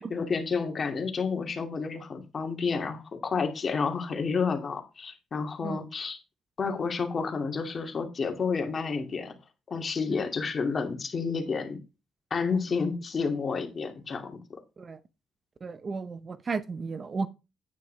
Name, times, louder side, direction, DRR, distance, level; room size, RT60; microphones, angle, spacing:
voice 1, 0.0-6.2 6.6-9.4 9.7-11.8 12.3-14.6, left 5 dB, 40° left, 2.5 m, -30 dB
voice 2, 15.6-17.3, right 4 dB, 40° right, 0.9 m, -34 dB
9.6 x 9.4 x 3.4 m
cardioid pair, 90°, 0 cm